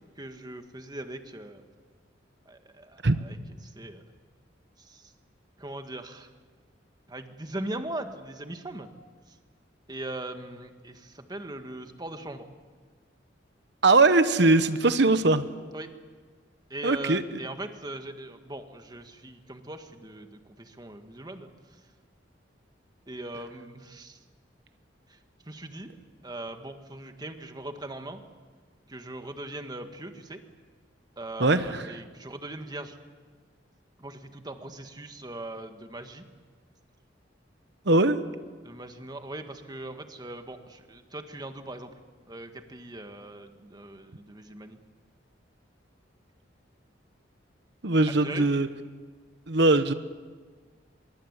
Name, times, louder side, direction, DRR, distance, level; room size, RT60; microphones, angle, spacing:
voice 1, 0.2-1.6 2.4-3.4 3.6-4.0 4.8-5.1 5.6-6.3 7.1-8.9 9.3-9.4 9.9-12.5 15.7-15.9 16.7-21.8 23.1-24.2 25.1-25.2 25.4-26.0 26.2-28.2 28.9-30.4 31.2-33.0 34.0-36.2 38.6-41.9 42.3-44.8 48.1-48.5, right 1 dB, 20° right, 7 dB, 1.8 m, -40 dB
voice 2, 13.8-15.4 16.8-17.4 31.4-31.9 37.8-38.2 47.8-48.7 49.5-49.9, right 2 dB, 65° right, 11 dB, 1.2 m, -21 dB
24.0 x 23.0 x 8.3 m, 1.5 s
head